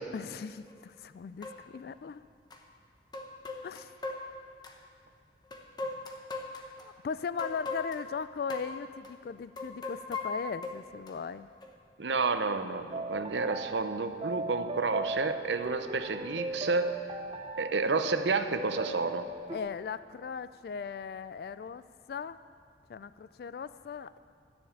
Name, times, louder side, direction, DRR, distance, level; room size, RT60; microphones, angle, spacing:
voice 1, 0.1-2.2 3.6-3.9 6.8-11.5 19.5-21.8 22.1-22.4 22.9-24.2, left 6 dB, 55° left, 14 dB, 0.3 m, -38 dB
sound 1, 0.7-0.8 1.4-1.6 2.5-2.6 3.1-4.8 5.5-6.8 7.4-8.1 8.5-8.8 9.0-9.1 9.6-11.1 11.6-11.7, left 3 dB, 25° left, 0.9 m, -38 dB
voice 2, 12.0-17.0 17.6-19.3, right 3 dB, 80° right, 9 dB, 0.7 m, -30 dB
sound 2, 12.9-19.6, right 3 dB, 30° right, 0.7 m, -38 dB
13.0 x 7.1 x 8.6 m, 2.3 s
head